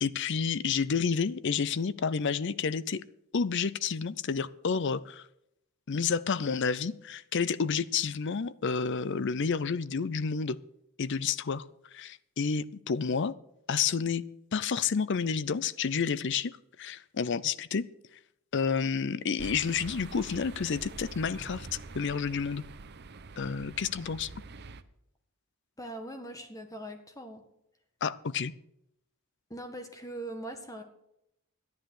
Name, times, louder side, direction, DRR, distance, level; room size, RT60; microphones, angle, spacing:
voice 1, 0.0-3.0 3.3-5.3 5.9-10.6 11.0-11.7 11.9-13.4 13.7-14.2 14.5-17.9 18.5-21.7 21.9-22.6 23.4-24.3 28.0-28.5, left 6 dB, 55° left, 0.5 m, -30 dB
sound 1, 19.4-24.8, right 3 dB, 50° right, 0.7 m, -45 dB
voice 2, 25.8-27.4 29.5-30.8, right 1 dB, 15° left, 1.6 m, -41 dB
12.0 x 10.5 x 6.4 m
head